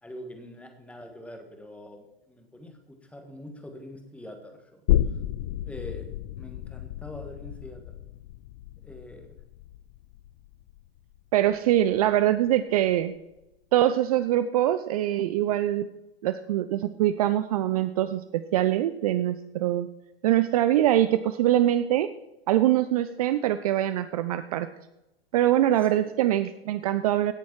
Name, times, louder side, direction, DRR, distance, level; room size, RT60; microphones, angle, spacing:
voice 1, 0.0-4.8 5.1-5.2 5.7-7.8 8.8-9.3 25.8-26.0, left 1 dB, 5° left, 5 dB, 1.6 m, -44 dB
sound 1, 4.9-12.2 12.5-12.6, left 13 dB, 25° left, 0.4 m, -32 dB
voice 2, 11.3-13.1 13.7-15.9 16.2-19.9 20.2-22.1 22.5-24.7 25.3-27.3, right 13 dB, 40° right, 12 dB, 0.5 m, -23 dB
17.0 x 7.0 x 4.7 m, 0.94 s
figure-of-eight pair, 110°, 30 cm